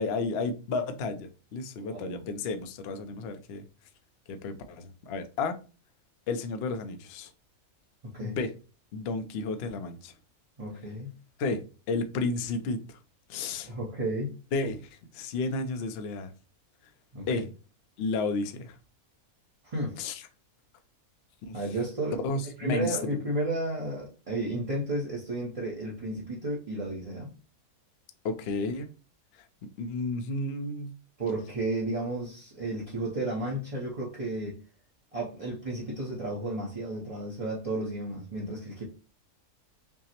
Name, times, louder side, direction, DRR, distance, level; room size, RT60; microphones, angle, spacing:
voice 1, 0.0-3.6 4.3-5.5 6.3-7.3 8.2-8.5 8.9-10.1 11.4-13.0 13.3-13.7 14.5-16.3 17.3-17.5 18.0-18.8 20.0-20.2 21.4-21.6 22.2-23.0 28.2-28.9 29.4-30.9, left 3 dB, 60° left, 0.7 m, -32 dB
voice 2, 1.7-2.3 8.0-8.4 10.6-11.1 13.6-14.3 17.1-17.4 19.6-19.9 21.5-22.2 22.6-27.3 31.2-34.6 35.1-38.8, right 1 dB, 35° right, 0.6 m, -33 dB
5.6 x 2.0 x 2.9 m
omnidirectional pair, 1.5 m